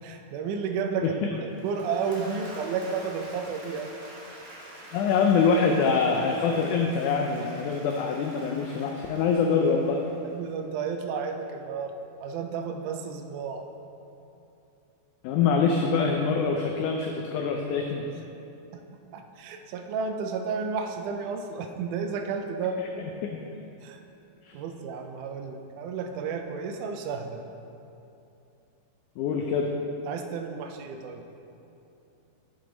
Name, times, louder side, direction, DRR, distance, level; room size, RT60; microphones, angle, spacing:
voice 1, 0.0-3.9 10.2-11.9 12.2-13.6 18.7-18.8 19.1-22.8 23.8-24.0 24.5-27.4 30.0-31.2, right 5 dB, 80° right, 5 dB, 1.9 m, -32 dB
Applause / Crowd, 1.4-10.6, right 1 dB, 60° right, 2.9 m, -47 dB
voice 2, 4.9-10.0 15.2-18.1 24.5-24.6 29.2-29.7, left 5 dB, 85° left, 2 dB, 1.8 m, -24 dB
7.5 x 7.2 x 3.9 m, 2.8 s
omnidirectional pair, 4.0 m